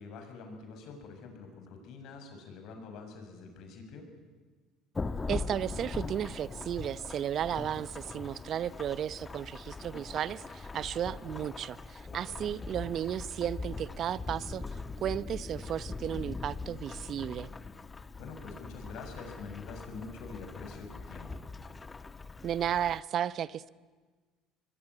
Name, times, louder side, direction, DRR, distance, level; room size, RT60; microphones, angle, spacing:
voice 1, 0.0-4.1 12.1-12.5 18.1-21.4, left 4 dB, 65° left, 5 dB, 7.1 m, -46 dB
Thunderstorm / Rain, 5.0-23.0, left 3 dB, 25° left, 1.4 m, -41 dB
voice 2, 5.3-14.6 15.0-17.5 22.4-23.7, right 10 dB, 50° right, 18 dB, 0.8 m, -34 dB
24.5 x 22.0 x 10.0 m, 1.4 s
supercardioid pair, 80°, 0 cm